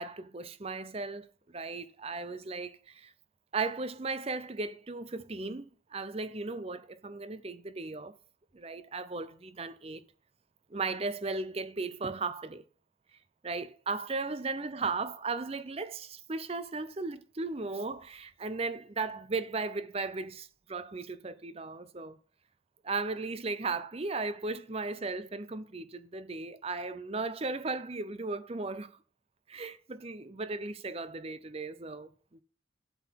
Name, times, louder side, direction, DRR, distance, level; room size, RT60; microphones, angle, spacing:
voice 1, 0.0-3.1 3.5-5.6 5.9-8.1 8.5-10.0 10.7-12.6 13.4-22.2 22.8-28.9 29.5-32.4, right 3 dB, 30° right, 0.6 m, -36 dB
12.0 x 4.0 x 5.8 m
head